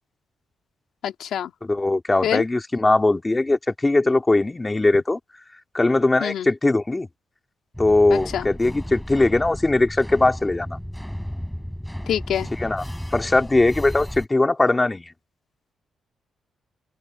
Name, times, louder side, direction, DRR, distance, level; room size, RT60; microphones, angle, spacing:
voice 1, 1.0-1.5 2.2-2.4 6.2-6.5 8.1-8.5 12.1-12.5, left 9 dB, 80° left, 2.4 m, -26 dB
voice 2, 1.6-5.2 5.7-7.1 7.8-10.8 12.6-12.8 13.1-15.1, left 2 dB, 20° left, 2.6 m, -20 dB
sound 1, 7.7-14.3, equal, 5° left, 7.8 m, -34 dB
cardioid pair, 90°, 0 cm